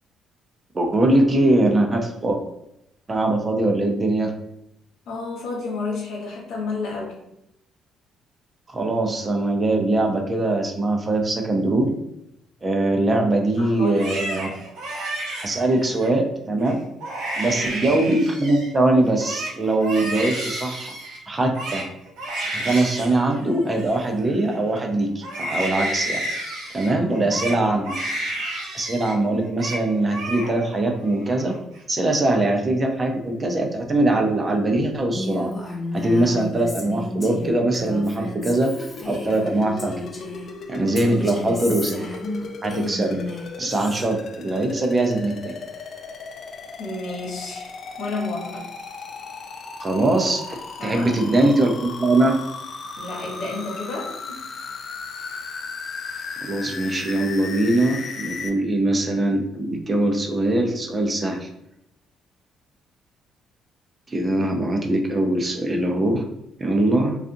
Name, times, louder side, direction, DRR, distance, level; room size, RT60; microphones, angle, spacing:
voice 1, 0.7-2.4 3.1-4.3 8.7-11.9 12.6-14.5 15.4-16.8 17.4-20.9 21.3-21.8 22.5-26.2 26.7-28.0 28.7-31.6 31.9-35.5 35.9-40.0 40.7-42.0 42.6-43.2 43.6-45.5 49.8-52.4 56.4-61.5 64.1-66.2 66.6-67.2, right 2 dB, 35° right, 3 dB, 0.6 m, -22 dB
voice 2, 5.1-7.2 13.6-14.3 17.5-17.9 26.9-27.4 41.0-41.6 46.8-48.6 50.8-51.1 53.0-54.4, left 3 dB, 75° left, -3 dB, 1.0 m, -32 dB
Crying sobbing, 13.8-16.1 16.6-16.7 17.0-18.7 19.0-24.8 25.2-29.2 29.4-29.8 30.1-30.8 31.1-31.8, right 1 dB, 75° right, 0.6 m, -31 dB
Female speech woman speaking, 35.1-40.5 40.9-44.1, left 1 dB, 30° left, 0.9 m, -33 dB
sound 1, 38.5-58.5, left 4 dB, 55° left, 0.4 m, -36 dB
2.5 x 2.4 x 2.6 m, 0.81 s
supercardioid pair, 60°, 0 cm